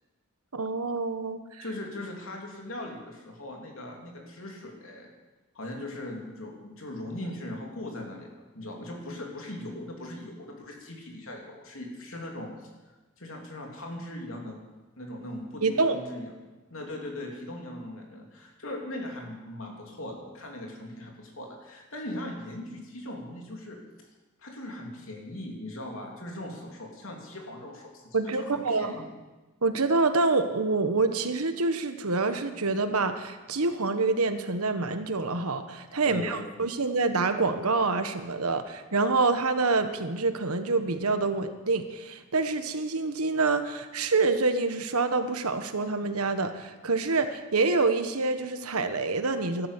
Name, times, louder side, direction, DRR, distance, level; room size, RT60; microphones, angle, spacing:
voice 1, 0.5-1.6 15.6-16.0 28.1-28.9 29.6-49.7, right 3 dB, 85° right, 9 dB, 1.3 m, -26 dB
voice 2, 1.6-5.1 5.6-12.7 13.2-14.6 15.0-16.3 16.7-23.8 24.4-29.1 36.0-36.5, left 1 dB, 65° left, 1 dB, 3.3 m, -39 dB
13.0 x 12.5 x 8.4 m, 1.2 s
head